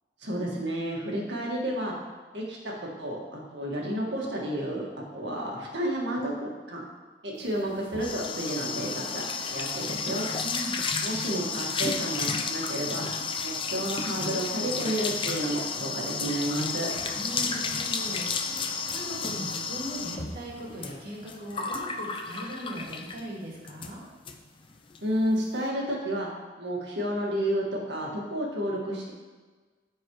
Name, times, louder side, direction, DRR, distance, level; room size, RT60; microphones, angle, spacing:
voice 1, 0.2-1.9 2.3-2.7 3.0-6.8 7.2-9.2 9.5-10.3 11.0-13.1 13.4-16.9 25.0-26.3 26.6-29.1, right 1 dB, 80° right, -3 dB, 1.9 m, -31 dB
sound 1, 7.5-23.3 23.7-23.9 24.3-24.4 24.6-25.0, left 4 dB, 30° left, 0.6 m, -32 dB
voice 2, 10.4-10.8 17.2-24.0, equal, 55° right, -4 dB, 2.4 m, -39 dB
14.0 x 4.6 x 3.2 m, 1.3 s
head